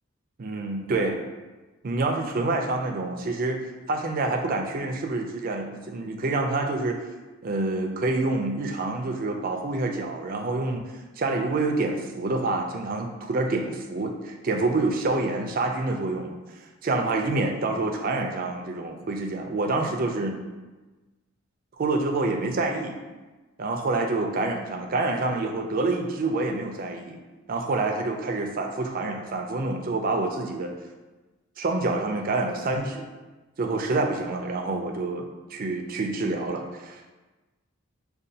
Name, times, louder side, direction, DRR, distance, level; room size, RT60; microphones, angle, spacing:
voice 1, 0.4-1.2 1.8-3.6 3.9-7.0 7.4-10.8 11.2-16.4 16.8-20.4 21.8-23.0 23.6-27.2 27.5-30.7 31.6-33.1 33.6-37.1, right 2 dB, 40° right, 3 dB, 0.4 m, -27 dB
6.3 x 2.3 x 2.7 m, 1.2 s
head